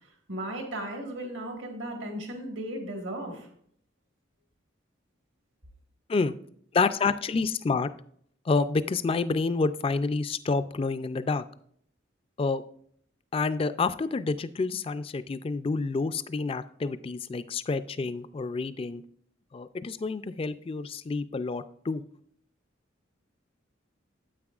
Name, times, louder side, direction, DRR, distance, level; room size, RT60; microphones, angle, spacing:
voice 1, 0.3-3.5, right 1 dB, 70° right, 2 dB, 1.6 m, -36 dB
voice 2, 6.7-7.9 8.5-11.4 12.4-12.6 13.3-19.0 19.5-22.0, left 4 dB, 30° left, 13 dB, 0.3 m, -28 dB
9.5 x 8.1 x 2.4 m, 0.64 s
head